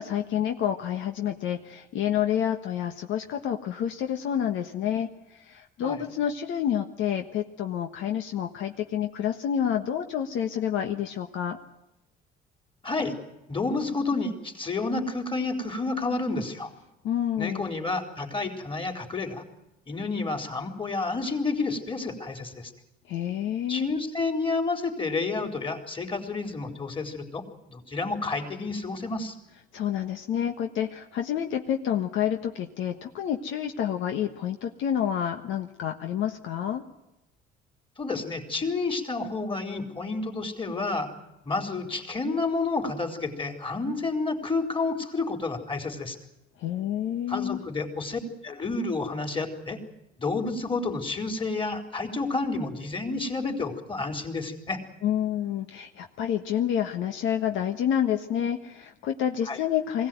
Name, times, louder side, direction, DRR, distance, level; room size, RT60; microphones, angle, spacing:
voice 1, 0.0-11.6 17.0-17.7 23.1-23.9 29.7-36.8 46.6-47.6 55.0-60.1, left 9 dB, 70° left, 5 dB, 1.4 m, -28 dB
voice 2, 12.8-13.1 13.5-16.7 17.4-19.4 19.9-22.7 23.7-27.4 27.7-29.3 38.0-41.1 41.4-46.2 47.3-49.8 50.2-54.8 59.5-59.6, left 3 dB, 25° left, 4 dB, 4.3 m, -30 dB
21.5 x 17.0 x 9.3 m, 0.93 s
supercardioid pair, 80°, 21 cm